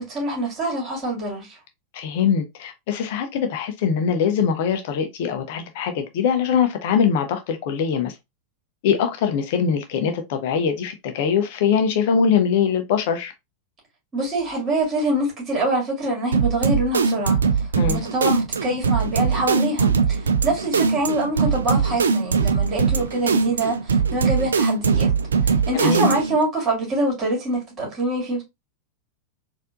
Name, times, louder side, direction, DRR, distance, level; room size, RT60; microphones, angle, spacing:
voice 1, 0.0-1.6 14.1-25.1 25.4-28.4, right 1 dB, 25° right, 2.2 m, -25 dB
voice 2, 1.9-8.1 8.8-13.3 17.8-18.0 25.7-26.1, left 7 dB, 50° left, 0.6 m, -22 dB
sound 1, 16.3-26.4, right 5 dB, 70° right, 0.4 m, -21 dB
4.2 x 2.6 x 2.5 m
figure-of-eight pair, 90°, 0 cm